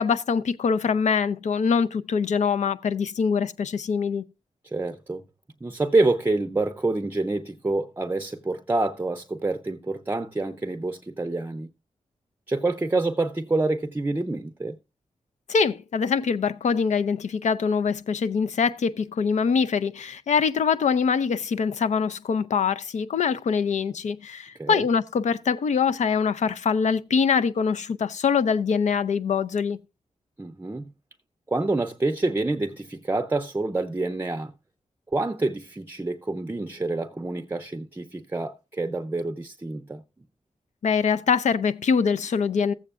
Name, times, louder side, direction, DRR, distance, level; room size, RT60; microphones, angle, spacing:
voice 1, 0.0-4.2 15.5-29.8 40.8-42.7, left 6 dB, 70° left, 0.5 m, -24 dB
voice 2, 4.6-5.2 5.6-11.7 12.5-14.8 24.6-24.8 30.4-30.9 31.5-34.5 35.1-40.0, right 2 dB, 15° right, 0.6 m, -27 dB
14.5 x 7.8 x 2.4 m
cardioid pair, 75°, 12 cm